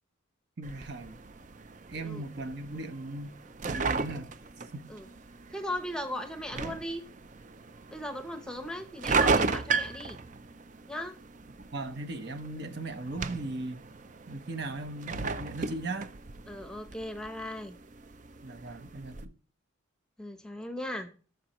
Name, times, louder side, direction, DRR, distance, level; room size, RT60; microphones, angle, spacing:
sound 1, 0.6-19.2, right 4 dB, 40° right, 0.5 m, -35 dB
voice 1, 0.6-1.2 1.9-3.4 3.7-4.3 4.7-4.9 11.7-13.8 14.3-16.1 18.4-19.3, right 2 dB, 55° right, 0.9 m, -38 dB
voice 2, 5.5-7.1 7.9-10.2 10.9-11.2 16.5-17.8 20.2-21.1, left 1 dB, 5° left, 0.8 m, -38 dB
17.0 x 6.7 x 3.0 m
head